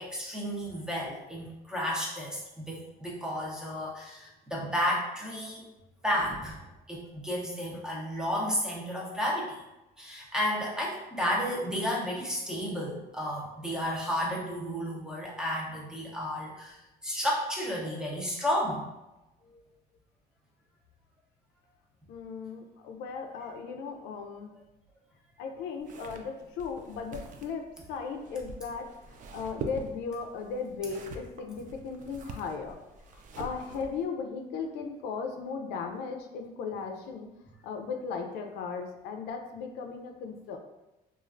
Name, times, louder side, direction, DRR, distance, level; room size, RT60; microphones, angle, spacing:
voice 1, 0.0-5.7 6.0-9.6 10.0-18.9, equal, 5° right, -4 dB, 0.7 m, -32 dB
voice 2, 22.1-24.5 25.4-28.9 29.3-32.8 33.1-37.3 37.6-40.6, left 5 dB, 85° left, 3 dB, 0.4 m, -37 dB
sound 1, 25.8-34.1, right 4 dB, 50° right, 0.4 m, -44 dB
3.1 x 2.4 x 2.5 m, 0.98 s
cardioid pair, 110°, 17 cm